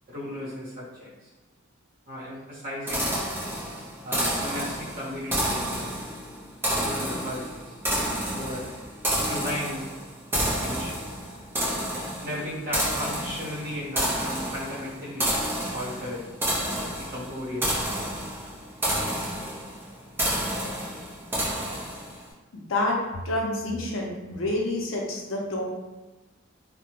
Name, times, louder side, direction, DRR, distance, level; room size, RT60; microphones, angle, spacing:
voice 1, 0.1-1.3 2.1-3.1 4.0-5.9 6.7-7.7 8.3-8.7 9.2-9.9 10.6-11.0 12.2-15.4 15.7-16.2 17.0-18.0, left 1 dB, 45° right, -7 dB, 0.9 m, -35 dB
sound 1, 2.9-22.2, right 1 dB, 10° right, 0.5 m, -30 dB
voice 2, 22.5-23.0 23.2-25.6, left 2 dB, 70° left, -2 dB, 0.5 m, -28 dB
2.1 x 2.1 x 2.9 m, 1.2 s
head